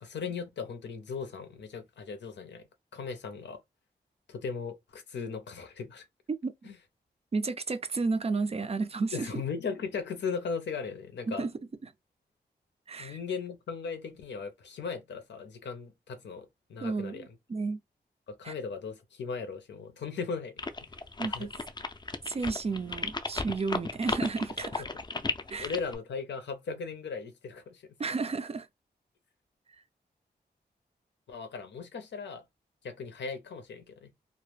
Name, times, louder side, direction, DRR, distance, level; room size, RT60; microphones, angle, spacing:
voice 1, 0.0-2.7 2.9-3.6 4.3-6.0 6.7-6.8 9.1-11.5 13.0-17.2 18.3-20.6 21.2-21.5 24.9-25.0 25.6-28.1 31.3-32.4 32.8-34.1, left 5 dB, 85° left, 0.6 m, -37 dB
voice 2, 7.3-9.3 11.3-11.5 11.8-11.9 12.9-13.2 16.8-17.8 18.4-18.5 21.2-21.5 22.3-24.8 25.5-25.7 28.0-28.7, right 4 dB, 35° right, 0.4 m, -32 dB
sound 1, 20.6-26.0, left 3 dB, 25° left, 0.4 m, -34 dB
2.1 x 2.0 x 3.1 m
cardioid pair, 50°, 18 cm